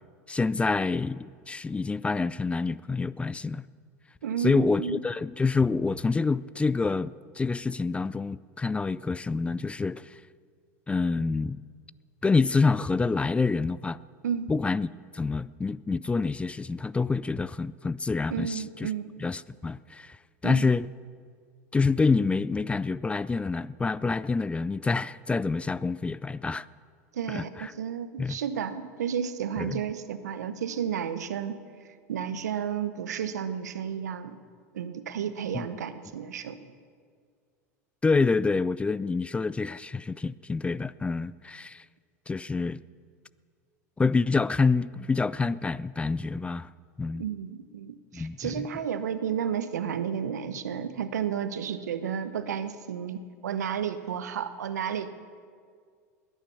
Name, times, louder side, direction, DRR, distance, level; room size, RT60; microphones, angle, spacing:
voice 1, 0.3-3.6 4.4-10.2 10.9-11.6 12.2-14.0 14.5-14.9 15.1-18.9 19.2-20.2 20.4-20.9 21.7-26.7 27.3-27.7 28.2-28.4 29.6-29.8 35.5-35.6 38.0-41.8 42.3-42.8 44.0-46.7 47.0-47.2 48.1-48.7, left 4 dB, 15° left, 0.3 m, -27 dB
voice 2, 4.2-5.0 14.2-14.6 18.3-19.1 20.4-20.7 27.1-31.6 32.1-34.4 34.7-36.7 47.1-55.1, right 8 dB, 90° right, 0.9 m, -32 dB
21.0 x 9.8 x 7.0 m
hypercardioid pair, 95°, 9 cm